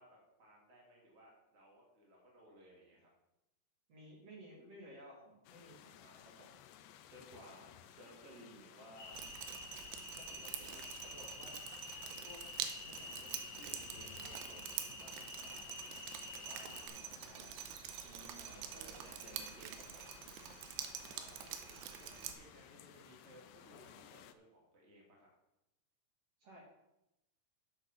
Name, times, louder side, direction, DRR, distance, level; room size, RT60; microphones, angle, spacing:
voice 1, 0.0-3.1 7.4-8.0 10.6-10.8 16.8-17.4 18.5-19.0 19.4-19.5 20.9-25.3, right 1 dB, 20° right, -3 dB, 1.9 m, -62 dB
voice 2, 3.9-6.5 7.1-9.2 10.2-11.6 12.0-12.4 12.8-15.6 16.3-17.5 18.0-20.1 26.4-26.6, equal, 40° right, -3 dB, 3.2 m, -57 dB
sound 1, 5.5-24.3, left 11 dB, 85° left, 2.8 m, -59 dB
sound 2, 9.0-16.9, left 3 dB, 70° left, 1.1 m, -50 dB
Drip, 9.1-22.3, right 10 dB, 90° right, 3.0 m, -46 dB
8.7 x 8.7 x 5.8 m, 0.91 s
omnidirectional pair, 4.8 m